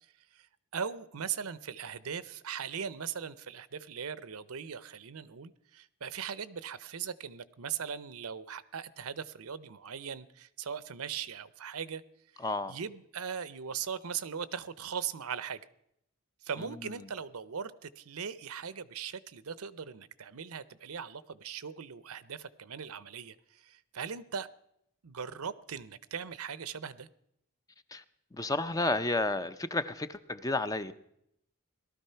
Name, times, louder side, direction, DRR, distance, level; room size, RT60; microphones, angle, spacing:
voice 1, 0.7-12.0 12.7-15.6 16.4-24.5 25.0-27.1, right 7 dB, 70° right, 0.7 m, -39 dB
voice 2, 12.4-12.8 16.6-16.7 27.9-28.0 28.3-30.9, left 2 dB, 15° left, 0.6 m, -31 dB
18.0 x 13.0 x 5.7 m
head